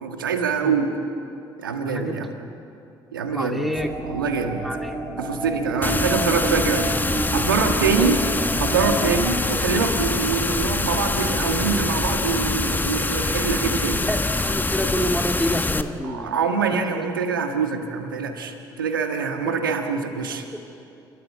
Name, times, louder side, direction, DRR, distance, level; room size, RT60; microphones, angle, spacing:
voice 1, 0.0-0.9 1.6-2.3 3.1-3.7 4.1-4.7 5.2-6.9 7.2-8.2 8.6-14.0 16.0-20.6, right 5 dB, 90° right, 5 dB, 1.6 m, -24 dB
voice 2, 1.9-2.3 3.3-3.9 4.6-5.0 5.8-5.9 8.0-8.2 14.0-16.4 16.9-17.1 19.5-19.6, equal, ahead, 3 dB, 2.5 m, -28 dB
sound 1, 3.7-9.3, right 3 dB, 20° right, 7.8 m, -30 dB
sound 2, 5.8-15.8, left 2 dB, 15° left, 1.2 m, -24 dB
29.0 x 14.0 x 9.1 m, 2.7 s
hypercardioid pair, 50°, 11 cm